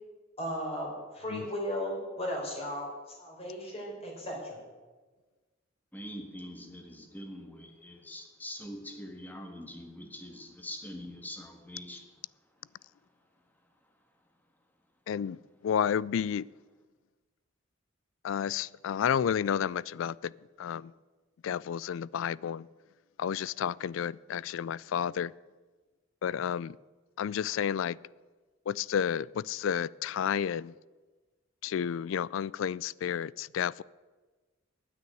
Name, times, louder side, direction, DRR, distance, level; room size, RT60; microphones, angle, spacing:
voice 1, 0.4-2.9 3.2-4.6, equal, 30° left, -1 dB, 4.1 m, -36 dB
voice 2, 5.9-12.0, left 1 dB, 10° left, 4 dB, 1.6 m, -43 dB
voice 3, 15.1-15.4 15.6-16.4 18.2-20.3 20.6-20.9 21.4-22.7 23.2-25.3 26.2-26.8 27.2-28.0 28.7-30.7 31.6-33.8, left 8 dB, 70° left, 23 dB, 0.3 m, -31 dB
9.8 x 9.3 x 9.2 m, 1.3 s
head